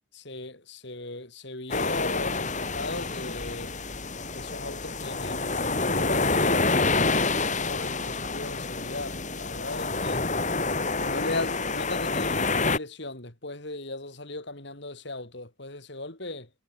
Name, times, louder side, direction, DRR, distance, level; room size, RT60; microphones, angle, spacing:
voice 1, 0.1-3.8 4.4-7.0 7.6-10.3 11.0-16.5, left 2 dB, 55° left, 3.8 m, -37 dB
sound 1, 1.7-12.8, left 3 dB, 35° left, 2.9 m, -28 dB
head